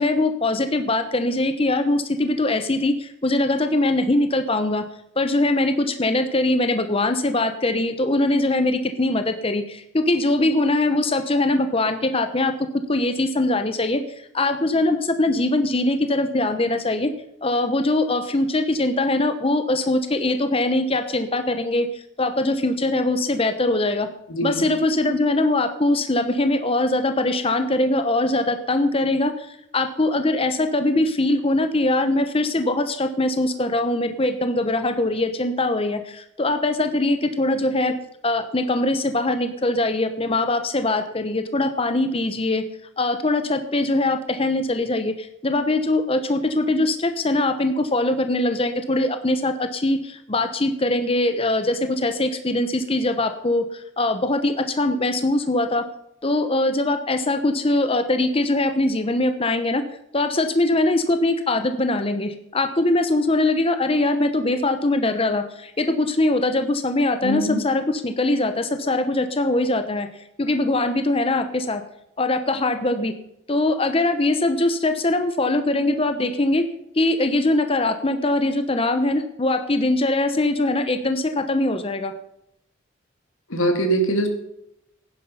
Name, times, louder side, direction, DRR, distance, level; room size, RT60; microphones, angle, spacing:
voice 1, 0.0-4.8 5.2-12.5 12.9-17.1 17.4-24.1 24.4-37.9 38.2-42.6 43.0-55.8 56.2-59.8 60.1-71.8 72.2-73.1 73.5-76.6 76.9-82.1, left 2 dB, 30° left, 8 dB, 0.9 m, -22 dB
voice 2, 24.3-24.6 67.2-67.6 83.5-84.3, right 1 dB, 90° left, 5 dB, 2.6 m, -22 dB
17.0 x 9.9 x 5.5 m, 0.78 s
head